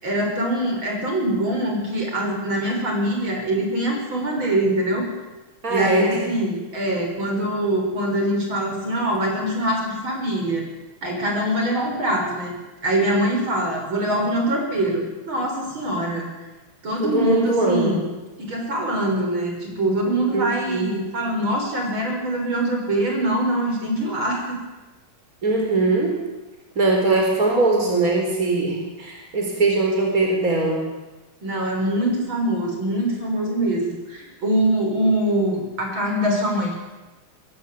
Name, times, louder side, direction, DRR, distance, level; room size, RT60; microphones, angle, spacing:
voice 1, 0.0-5.1 5.7-10.6 11.0-12.5 12.8-16.3 16.8-18.0 18.4-24.6 31.4-36.8, right 1 dB, 75° right, 1 dB, 7.3 m, -23 dB
voice 2, 5.6-6.3 17.0-18.0 20.3-20.9 25.4-26.2 26.7-30.8, right 2 dB, 40° right, 1 dB, 4.8 m, -21 dB
24.5 x 22.0 x 8.7 m, 1.1 s
omnidirectional pair, 2.2 m